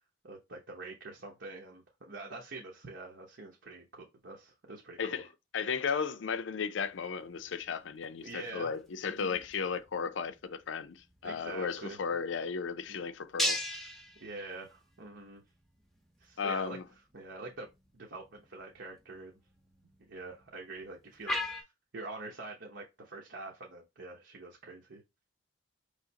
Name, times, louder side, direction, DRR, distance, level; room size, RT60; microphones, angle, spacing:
voice 1, 0.2-5.2 8.2-8.8 9.1-9.4 11.2-12.0 12.9-13.0 14.2-15.4 16.2-16.8 17.1-17.7 17.9-19.4 20.1-21.6 21.9-25.0, right 3 dB, 65° right, 0.9 m, -45 dB
voice 2, 5.5-13.9 16.4-16.8, left 6 dB, 75° left, 0.5 m, -35 dB
sound 1, 6.8-21.6, left 1 dB, ahead, 0.7 m, -42 dB
5.0 x 3.3 x 2.8 m
head